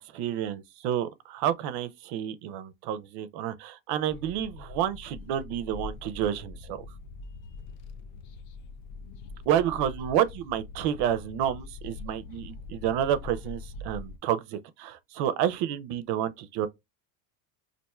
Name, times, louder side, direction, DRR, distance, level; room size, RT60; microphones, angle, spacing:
voice 1, 0.1-6.8 9.5-16.7, right 10 dB, 65° right, 0.5 m, -29 dB
sound 1, 4.1-14.2, left 3 dB, 65° left, 0.6 m, -43 dB
4.2 x 2.6 x 2.2 m
cardioid pair, 135°, 44 cm